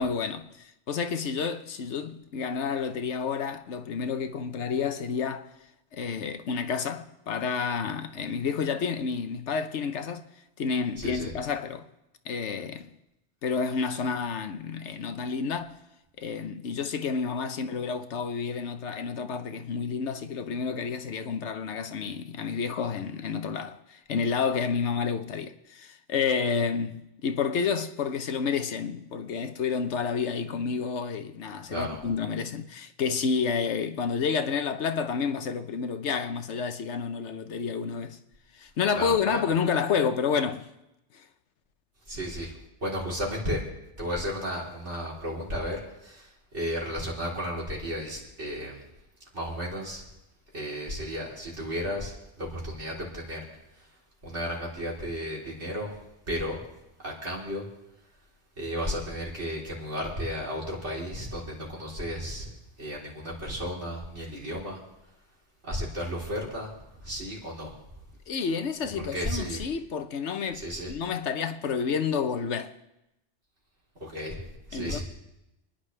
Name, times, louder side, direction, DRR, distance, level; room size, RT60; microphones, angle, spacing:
voice 1, 0.0-5.5 5.9-10.3 10.6-11.9 12.2-12.9 13.4-15.8 16.2-38.2 38.6-40.7 41.1-41.2 68.3-72.7 74.7-75.0, left 6 dB, 90° left, 1.2 m, -30 dB
voice 2, 11.0-11.3 31.7-32.0 38.9-39.5 42.1-42.5 42.8-43.6 44.0-48.8 49.3-50.1 50.5-53.4 53.8-53.9 54.2-56.0 56.3-56.6 57.0-57.7 58.6-64.8 65.6-67.7 69.1-69.6 70.5-70.9 74.0-74.4 74.7-75.0, equal, 90° right, 4.1 m, -33 dB
29.0 x 10.5 x 3.3 m
omnidirectional pair, 1.1 m